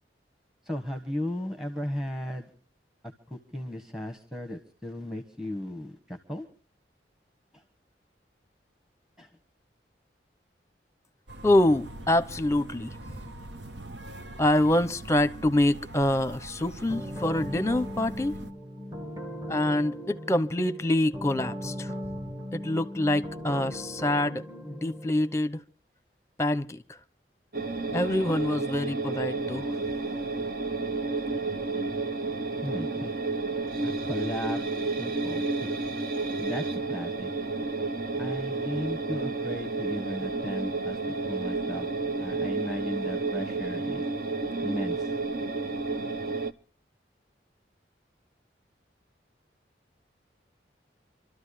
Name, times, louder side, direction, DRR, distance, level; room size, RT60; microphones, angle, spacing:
voice 1, 0.6-2.5 3.0-6.5 7.5-7.6 9.2-9.3 32.6-33.2 33.8-35.7 36.4-37.3 38.2-41.9 42.2-44.0 44.6-45.1, left 1 dB, 5° right, 1.5 m, -36 dB
sound 1, 11.3-18.5, right 1 dB, 80° right, 1.2 m, -43 dB
voice 2, 11.4-13.0 14.4-18.4 19.5-21.9 22.5-25.6 26.4-27.0 27.9-29.8, left 1 dB, 15° left, 0.9 m, -26 dB
sound 2, 16.9-25.4, equal, 20° right, 1.6 m, -38 dB
sound 3, 27.5-46.5, right 3 dB, 50° right, 1.0 m, -31 dB
27.0 x 13.0 x 3.3 m
head